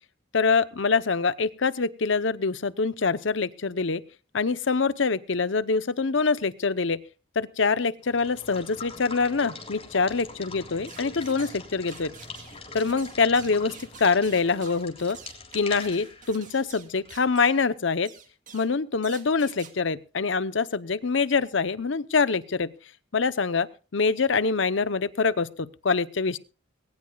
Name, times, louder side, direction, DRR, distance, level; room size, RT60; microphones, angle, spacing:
voice 1, 0.3-4.0 4.3-7.0 7.4-12.1 12.7-15.2 15.5-18.1 18.5-22.7 23.1-23.7 23.9-26.4, left 4 dB, 70° left, 15 dB, 0.8 m, -25 dB
Water / Water tap faucet / Liquid, 8.0-17.7, left 3 dB, 30° left, 3.4 m, -43 dB
sound 1, 10.9-11.6 11.9-17.6 18.0-18.7 19.0-19.7, right 7 dB, 40° right, 2.2 m, -48 dB
21.0 x 18.0 x 2.3 m, 0.34 s
head